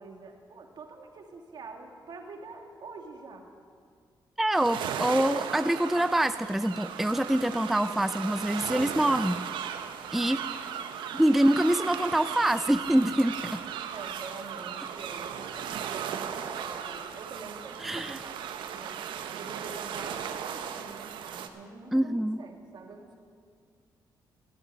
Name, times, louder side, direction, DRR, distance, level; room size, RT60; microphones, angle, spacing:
voice 1, 0.0-3.5 13.9-19.0 19.3-23.2, right 3 dB, 60° right, 3 dB, 1.9 m, -45 dB
voice 2, 4.4-9.4 10.1-10.4 11.1-13.6 17.8-18.2 21.9-22.4, right 1 dB, 5° right, 12 dB, 0.3 m, -25 dB
sound 1, 4.6-21.5, right 8 dB, 85° right, 0.8 m, -36 dB
14.0 x 7.2 x 9.1 m, 2.1 s
cardioid pair, 80°, 8 cm